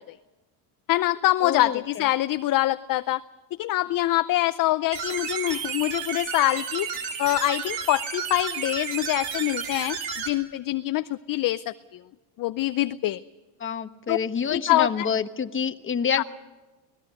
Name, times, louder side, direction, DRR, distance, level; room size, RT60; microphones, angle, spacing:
voice 1, 0.9-3.2 3.6-6.9 7.2-12.0 12.4-13.2 14.1-14.2 14.5-15.1 16.2-16.3, left 16 dB, 45° left, 12 dB, 0.6 m, -25 dB
voice 2, 1.4-1.8 13.6-16.2, left 6 dB, 25° left, 8 dB, 1.3 m, -27 dB
sound 1, 4.9-10.3, right 6 dB, 65° right, 4.1 m, -32 dB
25.5 x 19.0 x 6.5 m, 1.2 s
cardioid pair, 120°, 49 cm